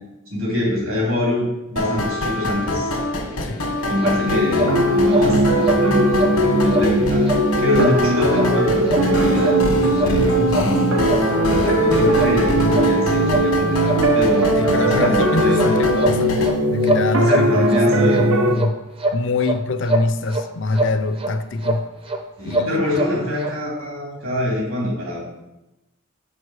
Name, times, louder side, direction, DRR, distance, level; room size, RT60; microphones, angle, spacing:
voice 1, 0.3-1.4 1.7-2.9 3.9-7.3 7.6-10.9 11.5-15.8 17.3-18.3 22.4-25.2, left 1 dB, 70° right, -3 dB, 2.6 m, -24 dB
Video game music loop, 1.8-16.5, left 1 dB, 90° left, 1.4 m, -25 dB
sound 1, 4.0-4.2 4.5-4.7 5.1-5.3 5.6-5.8 6.2-6.4 6.7-6.9 7.2-7.4 7.8-8.0 8.3-8.5 8.9-9.1 9.4-9.6 10.0-10.1 10.5-10.7 11.1-11.2 11.6-11.7 12.2-12.3 12.7-12.9 13.3-13.5 13.8-14.0 14.4-14.5 15.0-15.2 15.5-15.7 16.0-16.5 16.8-17.8 18.1-18.3 18.6-18.7 19.0-19.6 19.9-20.4 20.7-20.9 21.2-21.3 21.6-21.8 22.1-22.2 22.5-23.1 23.4-23.5, right 1 dB, 25° right, 0.5 m, -23 dB
I don't beleve (wurlitzer), 4.2-18.6, right 1 dB, 85° right, 0.8 m, -19 dB
voice 2, 14.5-18.8 19.1-21.8 22.5-22.9, left 2 dB, 60° left, 9 dB, 0.5 m, -24 dB
5.3 x 4.8 x 6.2 m, 0.97 s
head